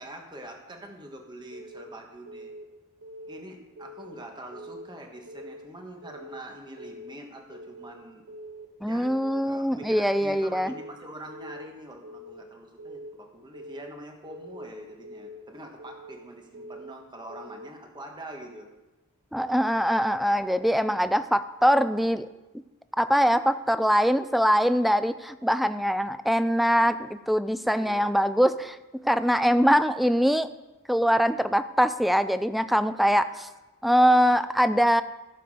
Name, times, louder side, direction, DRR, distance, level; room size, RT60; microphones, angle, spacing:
voice 1, 0.0-2.5 3.3-8.2 8.9-9.1 9.4-18.7 27.8-28.2 33.2-33.4, right 1 dB, 20° right, 2 dB, 1.4 m, -44 dB
Keyboard (musical) / Alarm, 1.5-1.9 2.3-2.6 3.0-3.4 3.8-4.1 4.5-4.9 5.3-5.6 6.0-6.4 6.8-7.1 7.5-7.9 8.3-8.7 9.0-9.4 9.8-10.2 10.5-10.9 11.3-11.7 12.0-12.4 12.8-13.2 13.5-13.9 14.3-14.7 15.0-15.4 15.8-16.2 16.5-16.9 17.3-17.7, equal, 80° right, 1.4 m, -44 dB
voice 2, 8.8-10.7 19.3-22.3 23.0-30.5 30.9-33.5 33.8-35.0, equal, ahead, 12 dB, 0.3 m, -23 dB
16.0 x 7.0 x 4.9 m, 1.1 s
head